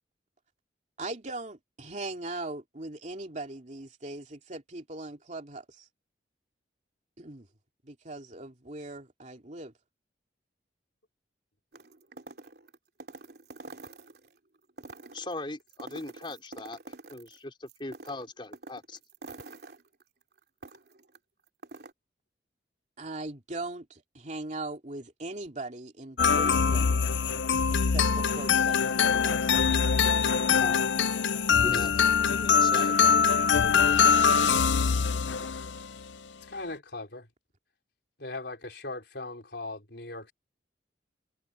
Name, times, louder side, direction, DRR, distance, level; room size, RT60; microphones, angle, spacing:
voice 1, 1.0-5.9 7.2-7.5 7.8-9.7 23.0-27.0 27.7-30.2, right 2 dB, 40° right, 2.8 m, -40 dB
sound 1, 11.7-14.3 14.7-17.4 17.7-21.2 21.5-21.9, right 3 dB, 60° right, 3.2 m, -46 dB
voice 2, 15.1-16.8 17.1-19.0 30.6-30.8 31.6-32.9, left 2 dB, 25° left, 3.8 m, -39 dB
sound 2, 26.2-35.9, left 6 dB, 80° left, 0.6 m, -23 dB
voice 3, 36.5-37.3 38.2-40.3, left 2 dB, 65° left, 5.0 m, -39 dB
head